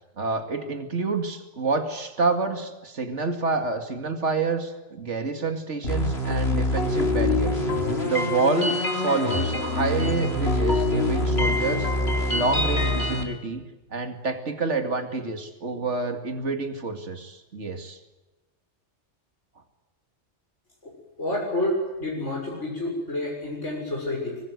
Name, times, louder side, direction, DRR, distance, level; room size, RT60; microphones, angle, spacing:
voice 1, 0.2-7.6 8.0-11.9 12.3-13.6 13.9-18.0, right 3 dB, 80° right, 6 dB, 2.7 m, -28 dB
sound 1, 5.8-13.2, left 1 dB, 60° left, 4.3 m, -24 dB
voice 2, 20.8-24.4, left 1 dB, 80° left, -2 dB, 7.3 m, -29 dB
25.5 x 24.5 x 8.1 m, 1.1 s
omnidirectional pair, 1.2 m